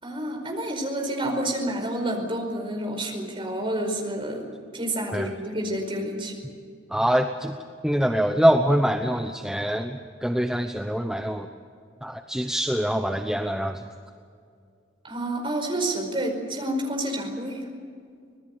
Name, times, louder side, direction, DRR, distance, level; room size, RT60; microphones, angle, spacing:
voice 1, 0.0-4.5 4.7-6.3 15.0-17.7, right 1 dB, 25° right, 2 dB, 5.0 m, -29 dB
voice 2, 6.9-7.6 7.8-11.5 12.0-13.8, equal, 5° right, 5 dB, 0.9 m, -24 dB
25.5 x 20.0 x 6.8 m, 2.3 s
head